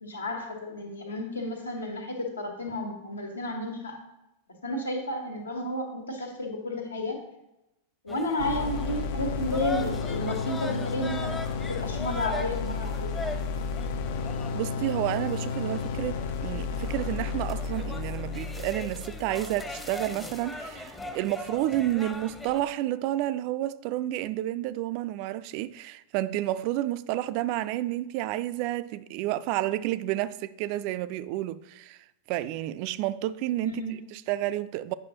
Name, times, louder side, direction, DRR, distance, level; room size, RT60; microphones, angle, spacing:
voice 1, 0.0-4.0 4.6-7.2 8.0-11.3 11.7-13.1 33.6-34.0, left 1 dB, 75° left, 1.5 m, -32 dB
sound 1, 8.1-22.7, left 2 dB, 10° left, 0.7 m, -41 dB
sound 2, 8.4-20.2, left 5 dB, 55° left, 0.5 m, -32 dB
voice 2, 14.5-32.0 32.3-33.8 34.1-34.9, right 14 dB, 45° right, 0.3 m, -30 dB
8.9 x 5.7 x 3.0 m
figure-of-eight pair, 90°, 0 cm